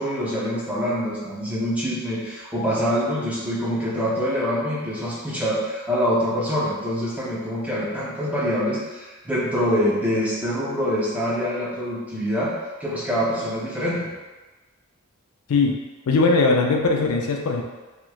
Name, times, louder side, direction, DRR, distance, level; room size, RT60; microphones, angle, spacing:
voice 1, 0.0-12.5 12.8-14.0, equal, 5° right, -7 dB, 0.7 m, -25 dB
voice 2, 16.1-17.6, left 3 dB, 80° left, 1 dB, 0.4 m, -19 dB
3.1 x 2.9 x 2.3 m, 1.2 s
head